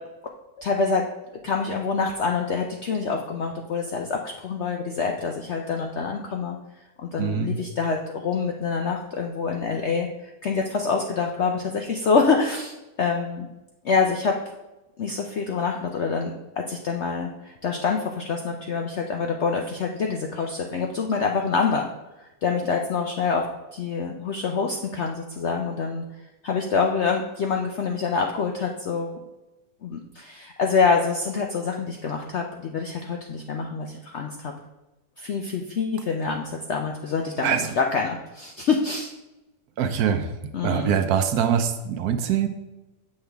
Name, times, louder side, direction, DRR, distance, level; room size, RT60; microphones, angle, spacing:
voice 1, 0.6-1.1 1.4-6.6 7.0-13.5 13.8-14.4 15.0-21.9 22.2-23.5 23.7-26.0 26.4-29.2 29.8-34.5 35.2-39.1 40.5-40.9, left 5 dB, 70° left, 2 dB, 0.6 m, -26 dB
voice 2, 7.2-7.5 37.4-37.7 39.8-40.3 40.6-42.5, right 8 dB, 70° right, 8 dB, 1.0 m, -23 dB
7.7 x 5.5 x 3.4 m, 1.0 s
omnidirectional pair, 1.8 m